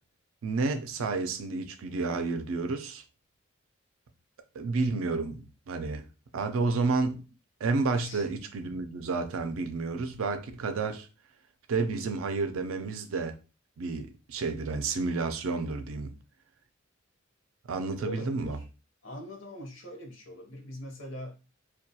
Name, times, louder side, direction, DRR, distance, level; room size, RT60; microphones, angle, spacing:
voice 1, 0.4-3.0 4.6-6.1 6.3-7.2 7.6-11.1 11.7-13.3 13.8-16.2 17.7-18.6, right 3 dB, 90° right, 0.4 m, -30 dB
voice 2, 7.9-8.3 18.0-18.6 19.0-21.5, left 1 dB, 70° left, 0.8 m, -42 dB
2.2 x 2.2 x 2.7 m
head